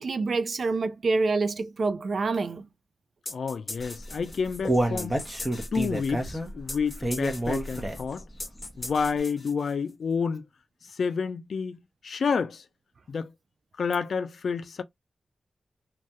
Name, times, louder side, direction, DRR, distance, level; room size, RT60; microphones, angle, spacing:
voice 1, 0.0-2.7, right 3 dB, 55° right, 0.3 m, -27 dB
voice 2, 3.3-5.2 5.7-8.3 8.8-10.5 10.8-12.6 13.1-13.3 13.8-14.8, left 5 dB, 70° left, 0.3 m, -29 dB
sound 1, 3.3-10.0, left 2 dB, 35° left, 0.9 m, -41 dB
Human voice, 4.0-8.2 8.6-8.7 9.2-9.3, right 1 dB, 10° right, 0.7 m, -28 dB
2.3 x 2.1 x 2.7 m
wide cardioid pair, 140°, 0 cm